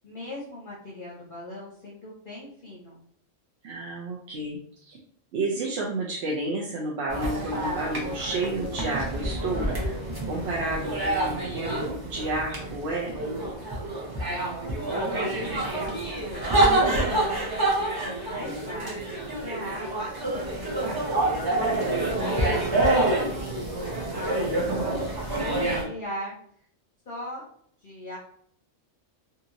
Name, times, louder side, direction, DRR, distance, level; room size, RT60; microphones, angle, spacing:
voice 1, 0.0-3.0 14.3-16.5 17.0-19.0 19.4-26.3 27.1-27.4 27.8-28.2, left 1 dB, 50° left, -4 dB, 0.7 m, -40 dB
voice 2, 3.6-5.0 5.3-9.9 10.3-13.3, right 2 dB, 65° right, -3 dB, 0.8 m, -31 dB
sound 1, 7.1-25.8, right 2 dB, 25° right, 0.6 m, -27 dB
2.8 x 2.6 x 2.5 m, 0.64 s
omnidirectional pair, 1.3 m